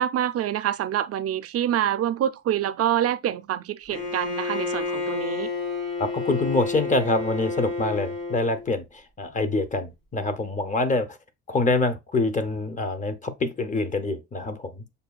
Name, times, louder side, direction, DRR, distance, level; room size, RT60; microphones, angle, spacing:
voice 1, 0.0-5.5, right 11 dB, 50° right, 0.4 m, -26 dB
Bowed string instrument, 3.9-8.6, left 3 dB, 80° left, 2.6 m, -30 dB
voice 2, 6.0-11.2 11.5-14.8, left 3 dB, 25° left, 0.6 m, -25 dB
6.6 x 2.3 x 2.3 m
cardioid pair, 90°, 30 cm